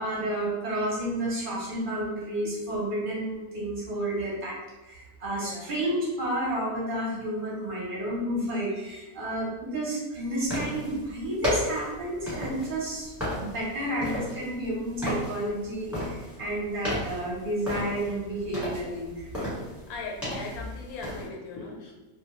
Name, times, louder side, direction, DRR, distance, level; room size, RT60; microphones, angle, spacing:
voice 1, 0.0-13.1 13.4-19.3, right 1 dB, 45° right, -5 dB, 0.8 m, -31 dB
voice 2, 5.4-5.7 19.9-21.9, left 3 dB, 85° left, -1 dB, 1.1 m, -39 dB
sound 1, 10.4-21.3, left 1 dB, ahead, 1.1 m, -34 dB
2.4 x 2.2 x 2.9 m, 1.2 s
omnidirectional pair, 1.5 m